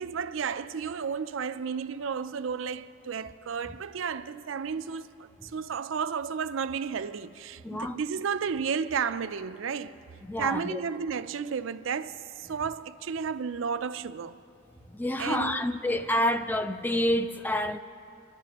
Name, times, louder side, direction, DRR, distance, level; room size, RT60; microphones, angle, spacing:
voice 1, 0.0-9.9 10.4-14.3 15.2-15.7, right 6 dB, 75° right, 0.4 m, -32 dB
voice 2, 7.6-8.0 10.2-10.8 14.9-17.8, left 1 dB, 10° left, 0.3 m, -28 dB
27.5 x 12.0 x 3.0 m
head